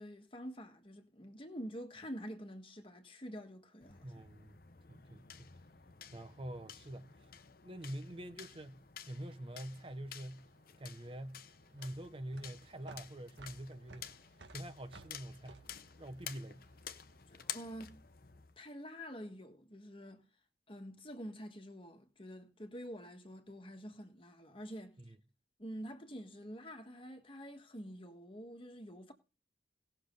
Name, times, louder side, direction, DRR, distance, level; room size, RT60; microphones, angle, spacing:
voice 1, 0.0-4.1 17.3-18.0 18.6-20.2 20.7-25.0 25.6-29.1, equal, 30° left, 1.6 m, -47 dB
sound 1, 3.8-18.6, left 9 dB, 55° left, 0.9 m, -52 dB
voice 2, 4.0-4.6 4.9-5.5 6.1-7.3 7.6-10.5 10.8-11.4 11.7-14.1 14.5-15.6 16.0-16.7 25.0-25.2, right 1 dB, 30° right, 0.8 m, -46 dB
sound 2, 10.4-17.0, right 3 dB, 75° right, 1.6 m, -58 dB
18.5 x 6.6 x 3.9 m
head